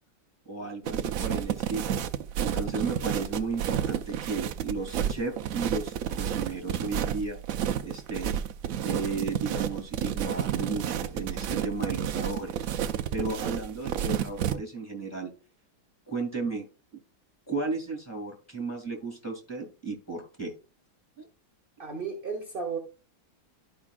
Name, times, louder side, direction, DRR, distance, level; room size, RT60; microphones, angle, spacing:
voice 1, 0.4-2.0 2.4-7.4 7.8-8.4 8.8-15.3 16.1-16.7 16.9-17.0 17.5-20.5 21.2-21.3, right 4 dB, 10° left, 1 dB, 2.4 m, -34 dB
sound 1, 0.9-14.5, right 9 dB, 80° right, 0.7 m, -30 dB
voice 2, 21.8-22.8, right 5 dB, 35° right, 3 dB, 1.0 m, -34 dB
12.0 x 5.2 x 2.4 m, 0.33 s
omnidirectional pair, 2.0 m